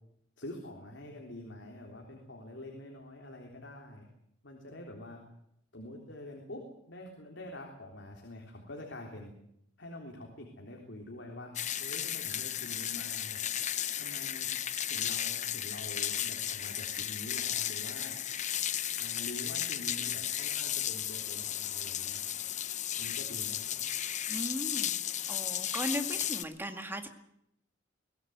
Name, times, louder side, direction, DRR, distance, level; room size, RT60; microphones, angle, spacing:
voice 1, 0.4-4.1 4.4-5.2 5.7-9.3 9.8-11.5 11.8-13.5 14.0-14.5 14.9-18.2 19.0-22.5 23.0-23.8, left 1 dB, 70° left, 1 dB, 3.7 m, -46 dB
sound 1, 11.6-26.4, left 10 dB, 40° left, 0.8 m, -34 dB
voice 2, 24.3-24.9 25.3-27.1, equal, 10° right, 7 dB, 2.0 m, -37 dB
22.5 x 17.5 x 8.1 m, 0.77 s
head